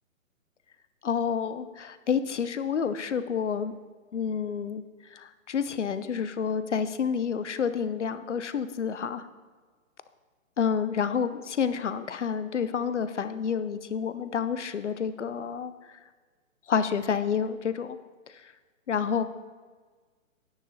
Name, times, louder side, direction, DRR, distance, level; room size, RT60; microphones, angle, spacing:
voice 1, 1.0-3.7 4.1-4.8 5.1-9.3 10.6-15.7 16.7-18.0 18.4-18.5 18.9-19.2, left 7 dB, 60° left, 12 dB, 0.7 m, -29 dB
9.8 x 9.5 x 4.0 m, 1.5 s
figure-of-eight pair, 130°, 41 cm